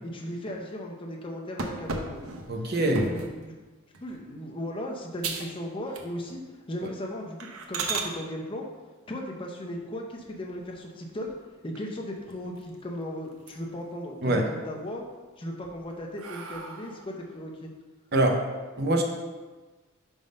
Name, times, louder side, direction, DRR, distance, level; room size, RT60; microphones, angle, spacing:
voice 1, 0.0-2.2 2.8-3.5 4.0-6.4 6.7-8.6 9.1-11.3 11.6-15.0 15.4-17.7, equal, 25° left, 0 dB, 0.6 m, -36 dB
sound 1, 1.6-3.4 3.9-4.3 4.7-4.8 5.2-5.6 5.9-6.4 6.7-6.9 7.4-8.1 10.1-10.8 11.2-11.3 11.7-11.8 12.1-12.9 13.3-13.9 14.3-14.9 15.5-17.2, right 4 dB, 80° right, 0.7 m, -36 dB
voice 2, 2.5-3.1 14.2-14.4 18.1-18.4 18.8-19.0, right 1 dB, 50° right, 2 dB, 0.8 m, -23 dB
5.3 x 3.6 x 5.3 m, 1.3 s
head